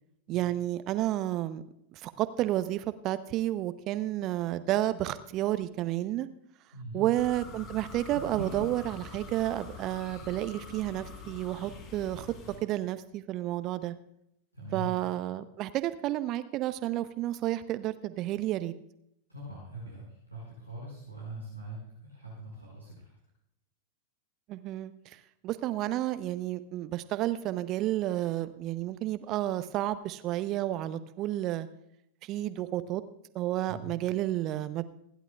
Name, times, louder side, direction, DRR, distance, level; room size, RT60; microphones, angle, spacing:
voice 1, 0.3-1.6 2.0-6.3 6.9-12.3 12.6-13.9 14.7-18.7 24.5-24.9 25.4-31.7 32.3-33.0 33.3-34.8, right 14 dB, 35° right, 13 dB, 0.7 m, -31 dB
voice 2, 6.7-7.1 14.5-14.9 19.3-23.1 33.7-33.9, right 2 dB, 90° left, -6 dB, 5.4 m, -42 dB
sound 1, 7.2-12.6, left 3 dB, 35° left, 6.4 m, -44 dB
27.5 x 11.5 x 2.4 m, 0.78 s
figure-of-eight pair, 90°, 0 cm